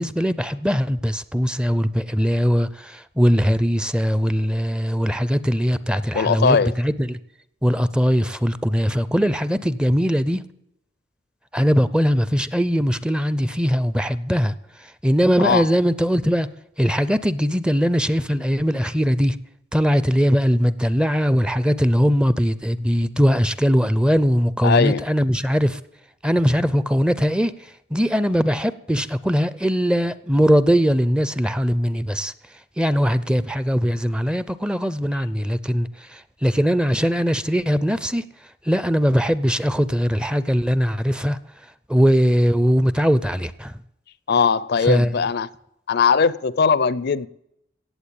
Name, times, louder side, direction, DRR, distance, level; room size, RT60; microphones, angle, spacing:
voice 1, 0.0-7.2 7.6-10.4 11.5-14.5 15.0-16.5 16.8-19.4 19.7-25.8 26.2-27.5 27.9-32.3 32.8-38.2 38.7-41.4 41.9-43.7 44.9-45.1, equal, 5° right, 0.5 m, -20 dB
voice 2, 6.1-6.7 15.4-15.7 24.6-25.0 44.3-45.5 45.9-47.3, left 5 dB, 55° left, 0.5 m, -19 dB
17.0 x 7.9 x 8.5 m
head